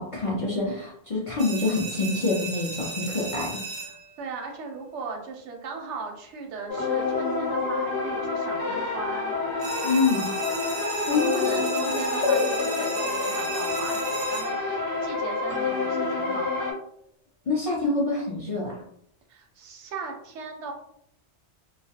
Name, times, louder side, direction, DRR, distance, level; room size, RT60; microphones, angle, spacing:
voice 1, 0.0-3.6 9.8-10.3 11.1-11.6 17.5-18.8, left 3 dB, 45° left, -6 dB, 0.4 m, -26 dB
sound 1, 1.4-4.3 9.6-14.8, right 4 dB, 35° right, 0.5 m, -35 dB
voice 2, 3.9-9.4 11.3-16.7 19.3-20.7, right 4 dB, 90° right, 2 dB, 0.9 m, -38 dB
sound 2, 6.7-16.7, left 3 dB, 85° left, 1.1 m, -27 dB
2.3 x 2.0 x 2.7 m, 0.71 s
omnidirectional pair, 1.2 m